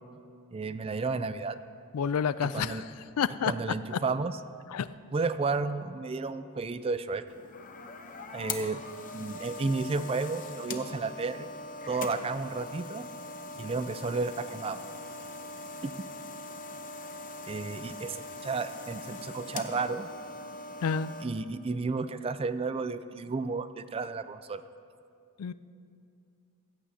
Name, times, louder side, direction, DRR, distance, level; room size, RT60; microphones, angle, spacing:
voice 1, 0.5-1.6 2.4-2.8 3.5-4.4 5.1-7.2 8.3-8.8 9.1-11.5 11.9-13.1 13.6-14.8 15.8-15.9 17.5-20.1 21.2-24.6, right 4 dB, 25° right, 13 dB, 0.3 m, -32 dB
voice 2, 1.9-2.8 3.2-3.5 4.7-4.9 20.8-21.1 25.4-25.5, left 7 dB, 80° left, 15 dB, 0.4 m, -29 dB
sound 1, 7.3-21.2, left 3 dB, 40° left, 0.7 m, -41 dB
16.0 x 15.0 x 2.8 m, 2.5 s
head